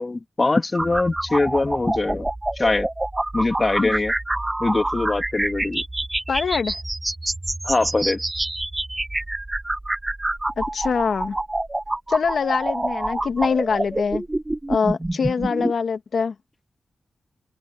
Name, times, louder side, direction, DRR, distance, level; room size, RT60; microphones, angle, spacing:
voice 1, 0.0-2.3 2.6-2.9 3.3-4.1 4.6-5.8 7.6-8.2, left 2 dB, 35° left, 2.2 m, -22 dB
sound 1, 0.7-15.7, right 2 dB, 20° right, 0.7 m, -27 dB
voice 2, 6.3-6.8 10.6-11.4 12.1-14.2 14.7-16.3, left 5 dB, 70° left, 1.8 m, -24 dB
cardioid pair, 60°, 0 cm